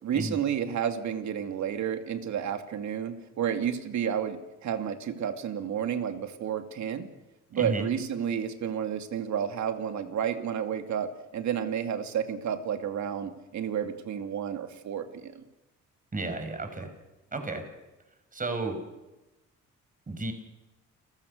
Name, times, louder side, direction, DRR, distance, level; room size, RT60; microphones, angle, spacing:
voice 1, 0.0-7.1 7.5-15.3, right 8 dB, 70° right, 7 dB, 2.6 m, -31 dB
voice 2, 7.5-7.9 16.1-16.9 17.3-17.6 18.3-18.8 20.1-20.3, right 2 dB, 25° right, 6 dB, 5.5 m, -32 dB
30.0 x 15.5 x 6.7 m, 1.0 s
cardioid pair, 90°, 30 cm